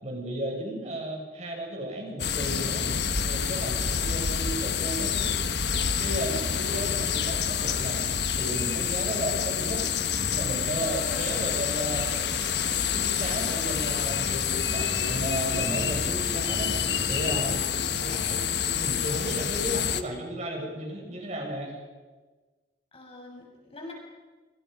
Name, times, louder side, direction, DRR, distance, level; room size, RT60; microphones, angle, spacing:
voice 1, 0.0-2.9 3.2-5.5 6.0-8.0 8.4-12.2 12.9-14.3 14.6-16.7 17.0-17.7 18.0-18.5 18.7-21.8, right 1 dB, 40° right, 1 dB, 6.5 m, -34 dB
sound 1, 2.2-20.0, left 7 dB, 65° left, 1.3 m, -28 dB
voice 2, 3.6-3.9 6.2-6.6 9.1-9.2 17.6-17.8 22.9-23.9, left 2 dB, 35° left, 1 dB, 5.9 m, -45 dB
sound 2, 10.1-17.7, equal, 10° left, 2.8 m, -40 dB
26.0 x 25.5 x 5.3 m, 1.3 s
head